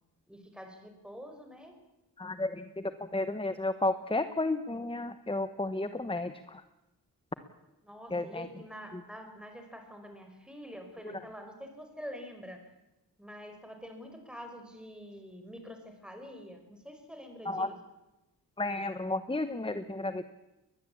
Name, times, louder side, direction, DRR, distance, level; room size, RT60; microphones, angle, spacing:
voice 1, 0.3-1.8 7.8-12.7 13.2-17.8, equal, ahead, 5 dB, 5.2 m, -46 dB
voice 2, 2.2-6.6 8.1-8.5 17.4-17.7 18.6-20.2, left 2 dB, 15° left, 11 dB, 1.0 m, -32 dB
22.0 x 20.0 x 8.6 m, 0.95 s
wide cardioid pair, 120°, 39 cm